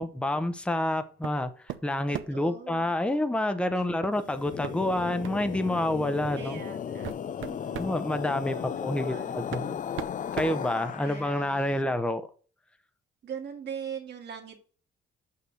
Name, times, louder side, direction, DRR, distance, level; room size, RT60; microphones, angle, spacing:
voice 1, 0.0-1.5 1.8-6.6 7.8-9.8 10.3-12.2, left 1 dB, 5° left, 10 dB, 0.8 m, -28 dB
sound 1, 1.2-1.4 1.7-2.5 4.0-4.2 4.6-4.8 5.2-5.4 6.3-6.4 6.8-8.0 9.0-9.1 9.5-11.3, right 12 dB, 80° right, 0.7 m, -38 dB
voice 2, 2.1-2.9 3.8-3.9 6.4-7.1 7.4-7.9 8.4-9.3 11.0-11.7 13.2-14.6, right 7 dB, 60° right, 3 dB, 1.9 m, -41 dB
sound 2, 4.2-11.6, left 8 dB, 40° left, 0.5 m, -36 dB
5.9 x 5.7 x 6.3 m, 0.42 s
cardioid pair, 90°, 20 cm